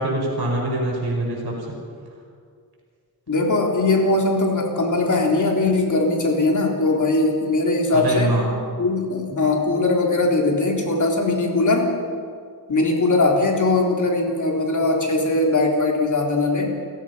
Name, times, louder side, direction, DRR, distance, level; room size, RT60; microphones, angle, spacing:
voice 1, 0.0-1.5 7.9-8.6, right 1 dB, 70° right, -1 dB, 5.7 m, -23 dB
voice 2, 3.3-8.4 8.8-12.0 12.7-16.7, left 2 dB, 50° left, 0 dB, 3.6 m, -20 dB
29.0 x 16.0 x 5.6 m, 2.2 s
wide cardioid pair, 135°, 39 cm